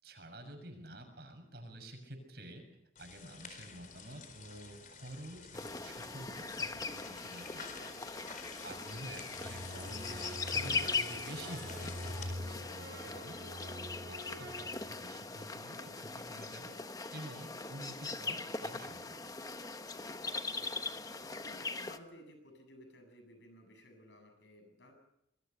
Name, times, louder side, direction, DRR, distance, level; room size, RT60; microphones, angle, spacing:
voice 1, 0.0-2.6 3.0-13.4 14.0-19.3, right 1 dB, 55° right, 6 dB, 6.6 m, -49 dB
sound 1, 2.9-12.3, left 6 dB, 45° left, 4.4 m, -51 dB
sound 2, 5.5-22.0, left 4 dB, 20° left, 1.1 m, -40 dB
sound 3, 9.3-15.4, equal, 85° right, 3.8 m, -45 dB
voice 2, 20.5-24.9, left 1 dB, 75° left, 6 dB, 7.9 m, -57 dB
26.5 x 22.5 x 5.8 m, 0.78 s
head